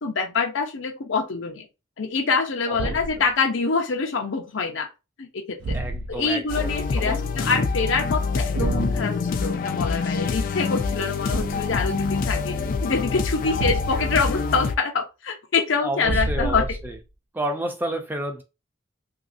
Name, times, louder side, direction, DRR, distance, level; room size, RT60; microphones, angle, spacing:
voice 1, 0.0-1.7 2.0-4.9 5.2-5.8 6.1-16.7, left 4 dB, 90° left, 0.7 m, -25 dB
voice 2, 2.7-3.0 5.7-7.5 15.8-17.0 17.3-18.4, right 1 dB, 10° right, 0.6 m, -31 dB
Thump thud, 2.7-3.3 5.6-6.3 8.6-9.0 11.3-11.8 13.6-14.2 16.0-17.0, right 2 dB, 65° right, 0.5 m, -28 dB
sound 1, 6.5-14.8, left 4 dB, 45° left, 0.3 m, -26 dB
3.0 x 2.6 x 2.6 m
head